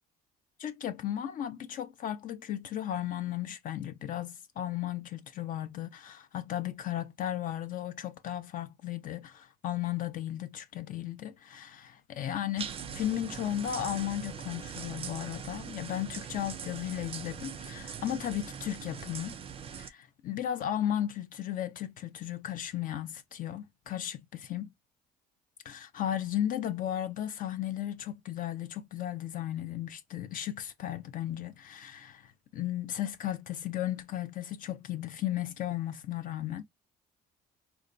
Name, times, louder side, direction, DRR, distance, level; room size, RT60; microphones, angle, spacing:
voice 1, 0.6-19.4 19.8-24.7 25.6-36.6, left 11 dB, 55° left, 0.4 m, -35 dB
sound 1, 12.6-19.9, right 7 dB, 35° right, 0.4 m, -41 dB
3.9 x 2.2 x 2.5 m
cardioid pair, 110°, 17 cm